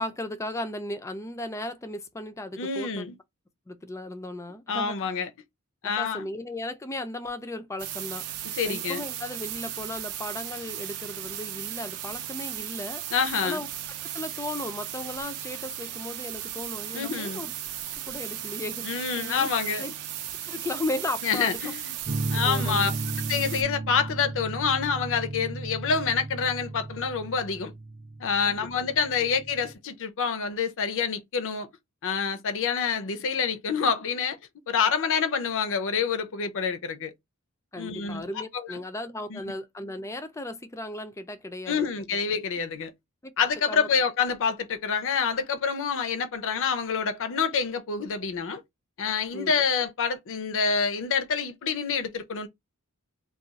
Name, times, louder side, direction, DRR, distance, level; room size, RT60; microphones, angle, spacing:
voice 1, 0.0-3.1 3.7-5.1 5.8-8.2 8.6-13.0 13.4-13.7 14.1-17.5 18.1-19.5 19.8-19.9 20.3-21.7 22.4-23.0 28.4-28.7 37.7-42.2 43.2-43.3 43.7-43.9 49.3-49.5, left 1 dB, 15° left, 0.4 m, -36 dB
voice 2, 2.6-3.1 4.7-5.3 5.8-6.3 8.5-9.0 13.1-13.6 16.9-17.4 18.8-19.8 21.2-21.9 22.3-22.9 23.3-27.7 28.2-31.7 32.0-34.4 34.7-37.1 37.8-38.2 38.7-38.8 39.3-39.4 41.7-42.9 43.4-48.6 49.0-52.5, left 6 dB, 60° left, 0.6 m, -27 dB
sound 1, 7.8-23.6, right 11 dB, 80° right, 0.5 m, -36 dB
sound 2, 22.1-29.7, right 2 dB, 25° right, 0.6 m, -34 dB
2.4 x 2.3 x 3.9 m
head